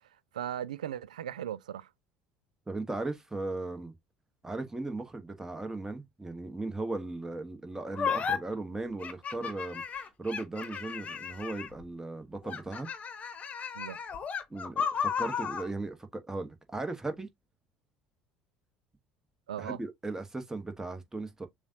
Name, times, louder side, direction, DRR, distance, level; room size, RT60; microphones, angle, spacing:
voice 1, 0.3-1.9 13.7-14.0 19.5-19.8, right 10 dB, 80° right, 0.3 m, -37 dB
voice 2, 2.7-3.9 4.4-9.8 10.2-12.9 14.5-17.3 19.6-21.5, right 2 dB, 15° right, 1.2 m, -37 dB
sound 1, 8.0-8.4 9.0-11.8 12.4-15.7, left 6 dB, 35° left, 1.1 m, -34 dB
6.9 x 2.4 x 2.7 m
hypercardioid pair, 65°, 4 cm